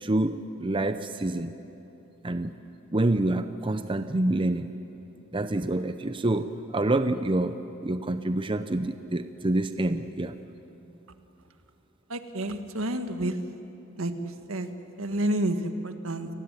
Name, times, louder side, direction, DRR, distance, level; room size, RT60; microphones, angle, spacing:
voice 1, 0.0-1.5 2.2-2.5 2.9-4.7 5.3-10.4, right 2 dB, 25° right, 10 dB, 0.7 m, -27 dB
voice 2, 12.1-13.3 14.0-14.1 14.5-14.7 15.0-16.3, right 1 dB, 75° right, 8 dB, 1.7 m, -29 dB
29.5 x 18.5 x 10.0 m, 2.9 s
head